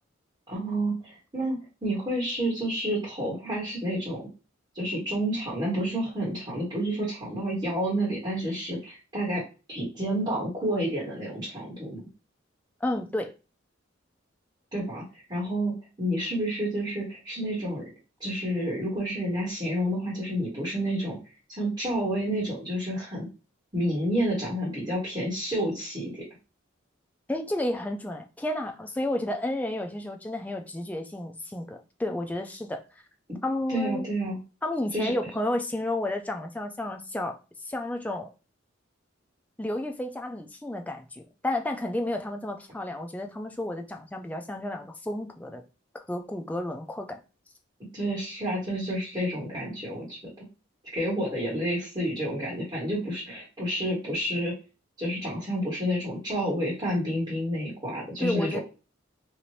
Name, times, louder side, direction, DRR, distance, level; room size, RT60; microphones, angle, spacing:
voice 1, 0.5-1.6 1.8-4.2 4.7-9.4 9.7-12.0 14.7-15.0 15.3-17.8 18.2-21.2 21.5-23.3 23.7-26.1 33.7-34.4 34.9-35.1 47.9-50.2 50.9-54.5 55.0-58.6, equal, 25° right, 1.4 m, -29 dB
voice 2, 12.8-13.4 27.3-33.0 33.4-34.1 34.6-38.3 39.6-45.6 45.9-47.2 58.2-58.6, left 1 dB, 10° left, 0.4 m, -31 dB
2.8 x 2.5 x 3.1 m
head